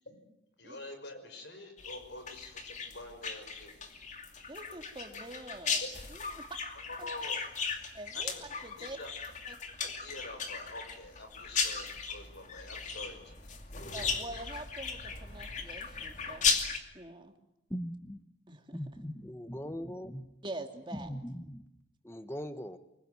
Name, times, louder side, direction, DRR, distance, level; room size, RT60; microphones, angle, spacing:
voice 1, 0.6-3.8 5.8-5.9 7.0-7.4 8.1-8.4 8.8-9.1 9.8-13.5, left 2 dB, 70° left, 7 dB, 5.6 m, -46 dB
sound 1, 1.8-16.8, left 5 dB, 40° left, 2.6 m, -36 dB
voice 2, 4.5-5.8 6.1-6.4 7.0-7.1 7.9-8.3 8.6-9.0 9.5-9.6 13.9-16.6 16.9-17.3 18.5-18.8 20.4-21.1, right 1 dB, 25° right, 5 dB, 2.6 m, -45 dB
voice 3, 17.7-18.2 18.7-20.3 20.9-21.7 22.0-22.8, equal, 15° left, 10 dB, 1.1 m, -40 dB
25.0 x 23.0 x 9.5 m, 0.85 s
head